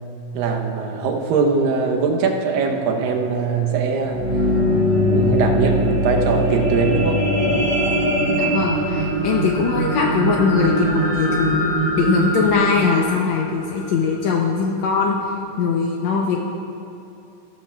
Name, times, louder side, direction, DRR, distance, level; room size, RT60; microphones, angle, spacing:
voice 1, 0.3-4.3 5.0-7.2, right 5 dB, 90° right, 2 dB, 2.6 m, -21 dB
sound 1, 4.0-14.3 14.9-15.0, equal, 65° right, 4.1 m, -21 dB
voice 2, 8.1-11.7 11.9-15.2 15.6-16.4, left 5 dB, 75° left, 0 dB, 1.7 m, -21 dB
15.0 x 13.0 x 2.3 m, 2.8 s
omnidirectional pair, 3.9 m